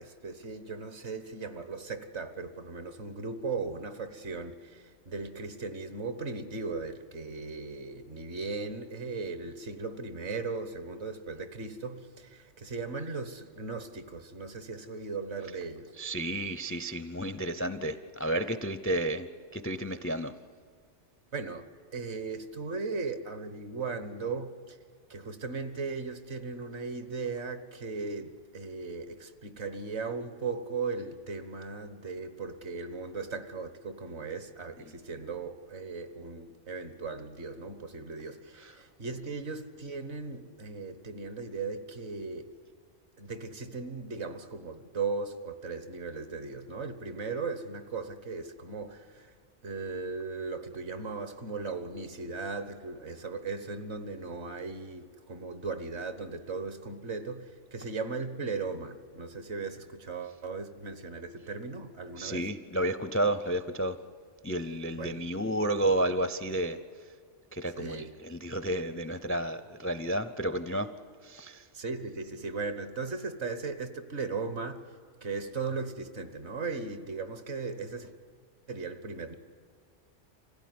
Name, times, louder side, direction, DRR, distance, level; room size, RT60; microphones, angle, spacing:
voice 1, 0.0-15.9 21.3-21.6 21.9-24.8 25.1-42.5 43.2-49.3 49.6-62.4 65.0-65.2 67.8-68.1 71.7-74.9 75.2-78.1 78.7-79.4, right 4 dB, 65° right, 1.6 m, -37 dB
voice 2, 16.0-19.3 19.5-20.3 34.9-35.0 38.6-38.8 62.2-64.0 64.4-67.1 67.5-70.9 71.2-71.7, right 1 dB, 20° left, 0.4 m, -31 dB
26.0 x 16.0 x 9.5 m
omnidirectional pair, 1.2 m